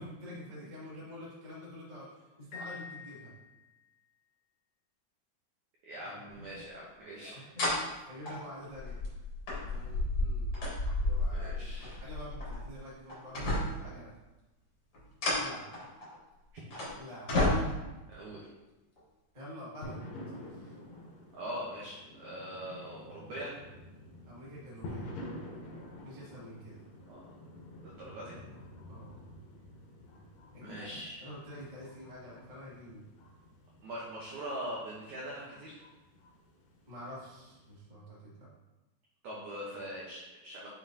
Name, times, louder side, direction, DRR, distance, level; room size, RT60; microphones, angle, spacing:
voice 1, 0.0-3.3 6.3-6.5 7.2-9.0 9.7-10.5 11.0-14.1 15.4-15.7 16.9-17.5 19.3-20.0 20.4-20.7 24.2-25.1 26.0-26.8 28.9-29.2 30.5-33.0 36.9-38.5, left 1 dB, 65° right, -7 dB, 0.4 m, -47 dB
Piano, 2.5-4.0, left 5 dB, 90° left, 3.6 m, -47 dB
voice 2, 5.9-7.4 11.3-12.0 18.1-18.5 21.3-23.5 27.1-27.2 27.8-28.3 30.6-31.3 33.8-35.8 39.2-40.7, equal, 85° right, -5 dB, 1.7 m, -42 dB
sound 1, 6.6-6.7 7.6-7.8 8.3-12.8 13.1-13.9 14.9-16.2 16.7-16.9 17.3-18.0 19.0-19.1, left 1 dB, 55° left, 1.6 m, -32 dB
sound 2, 19.8-37.8, left 1 dB, 70° left, 2.4 m, -49 dB
9.3 x 4.1 x 2.7 m, 1.1 s
omnidirectional pair, 4.9 m